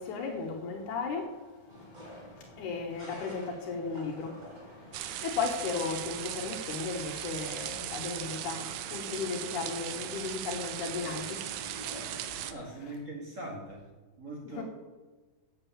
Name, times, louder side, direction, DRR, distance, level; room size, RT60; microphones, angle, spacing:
voice 1, 0.0-1.4 2.0-11.5 11.9-12.1 14.4-14.6, left 5 dB, 80° left, 2.5 m, -36 dB
sound 1, 1.7-12.6, equal, 15° right, 2.1 m, -50 dB
sound 2, 4.9-12.5, right 12 dB, 85° right, 2.0 m, -38 dB
voice 2, 12.5-13.9 14.2-14.6, right 1 dB, 45° right, 1.1 m, -41 dB
7.9 x 7.0 x 7.2 m
omnidirectional pair, 3.5 m